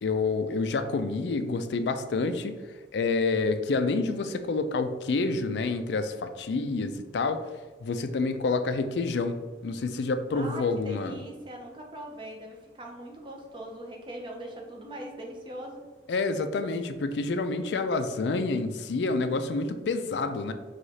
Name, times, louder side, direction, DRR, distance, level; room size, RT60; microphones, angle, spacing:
voice 1, 0.0-2.5 2.9-7.5 7.8-9.4 9.6-11.2 16.1-20.5, left 3 dB, 80° left, 9 dB, 0.4 m, -28 dB
voice 2, 10.3-15.8, right 1 dB, 25° right, 1 dB, 0.7 m, -41 dB
4.7 x 2.4 x 4.0 m, 1.3 s
head